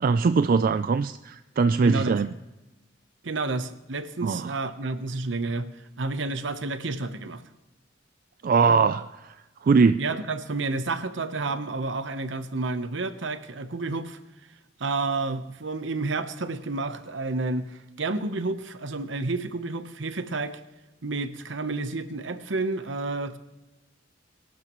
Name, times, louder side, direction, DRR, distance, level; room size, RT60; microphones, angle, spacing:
voice 1, 0.0-2.3 4.2-4.6 8.4-9.3 9.6-10.1, right 5 dB, 50° right, 10 dB, 0.4 m, -21 dB
voice 2, 1.8-2.2 3.2-5.7 6.0-7.4 10.0-14.2 14.8-20.6 21.0-23.4, right 3 dB, 70° right, 11 dB, 0.9 m, -30 dB
23.0 x 12.0 x 3.1 m, 1.0 s
head